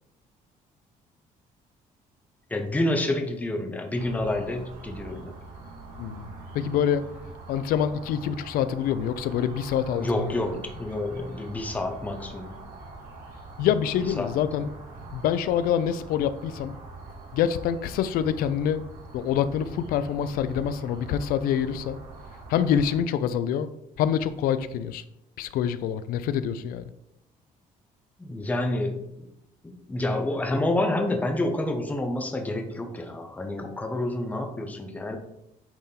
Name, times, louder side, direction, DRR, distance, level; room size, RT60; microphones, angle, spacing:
voice 1, 2.5-5.3 10.0-12.6 14.2-14.3 28.2-29.3 29.6-35.2, left 1 dB, 10° left, 3 dB, 0.8 m, -28 dB
sound 1, 4.0-23.0, right 2 dB, 80° right, 2.5 m, -44 dB
voice 2, 6.0-6.3 6.5-7.0 7.5-10.3 13.6-14.7 15.1-16.8 17.3-18.8 19.1-22.0 22.5-23.7 24.0-25.0 25.4-26.9, left 9 dB, 85° left, 13 dB, 0.5 m, -26 dB
8.9 x 4.3 x 3.9 m, 0.84 s
cardioid pair, 155°, 15 cm